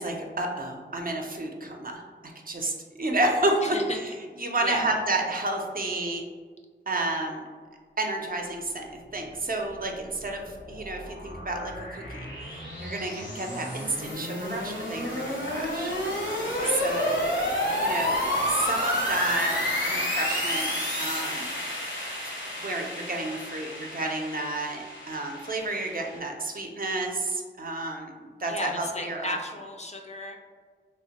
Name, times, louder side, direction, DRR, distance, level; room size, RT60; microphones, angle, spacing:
voice 1, 0.0-3.8 4.4-6.2 6.9-7.4 8.0-16.0 16.8-17.3 17.7-20.7 20.9-21.5 22.6-28.1 28.4-29.3, right 2 dB, 50° right, 2 dB, 0.4 m, -31 dB
voice 2, 3.6-4.0 4.4-4.9 16.5-16.8 28.5-30.4, left 1 dB, 35° left, 2 dB, 0.4 m, -35 dB
sound 1, 10.1-26.2, left 1 dB, 75° left, 0.8 m, -30 dB
3.1 x 2.1 x 2.8 m, 1.5 s
wide cardioid pair, 50°, 19 cm